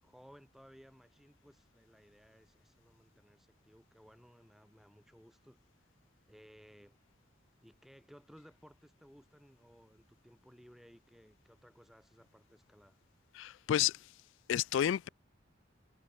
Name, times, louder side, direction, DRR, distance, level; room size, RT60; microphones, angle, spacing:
voice 1, 0.0-5.9 6.3-7.0 7.6-13.0, equal, ahead, 4.1 m, -60 dB
voice 2, 13.4-14.0 14.5-15.1, left 10 dB, 80° left, 0.3 m, -30 dB
head